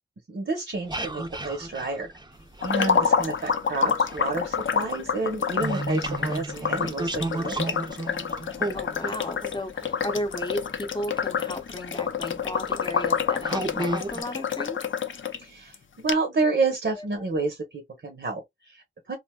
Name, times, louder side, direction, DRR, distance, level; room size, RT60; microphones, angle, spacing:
voice 1, 0.3-2.1 2.6-7.8 15.4-19.2, right 3 dB, 70° right, 0.8 m, -30 dB
sound 1, 0.7-3.5 3.9-10.6 11.5-11.6 12.2-12.5 13.0-13.1 13.4-14.2, right 2 dB, 20° right, 0.5 m, -32 dB
sound 2, 2.6-15.4 15.7-15.8 16.1-16.2, left 6 dB, 85° left, 0.4 m, -28 dB
voice 2, 8.7-14.8 17.0-17.1, equal, 25° left, 0.6 m, -34 dB
3.3 x 2.6 x 2.2 m
wide cardioid pair, 75°, 20 cm